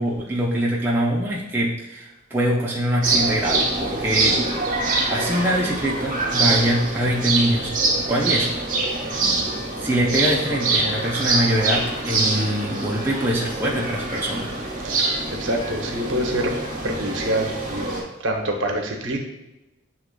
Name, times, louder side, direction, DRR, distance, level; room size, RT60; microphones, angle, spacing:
voice 1, 0.0-4.4 5.1-7.7 8.1-8.5 9.0-9.2 9.8-14.5, equal, 10° right, -3 dB, 0.5 m, -23 dB
sound 1, 3.0-18.0, right 3 dB, 35° right, 1.2 m, -25 dB
voice 2, 14.8-16.6 16.8-19.2, right 1 dB, 65° right, 2 dB, 0.8 m, -26 dB
7.6 x 2.9 x 2.2 m, 0.98 s
head